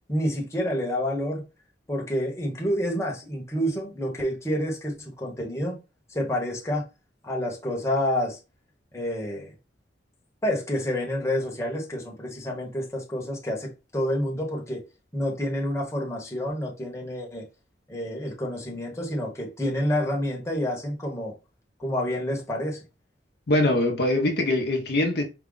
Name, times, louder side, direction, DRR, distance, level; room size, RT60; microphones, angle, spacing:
voice 1, 0.1-1.4 1.9-5.8 6.1-6.8 7.2-8.4 8.9-9.5 10.4-14.8 15.1-17.5 17.9-21.3 21.8-22.8, equal, 15° left, 1.1 m, -28 dB
voice 2, 23.5-25.2, left 1 dB, 60° left, 0.8 m, -23 dB
4.8 x 2.3 x 3.8 m
head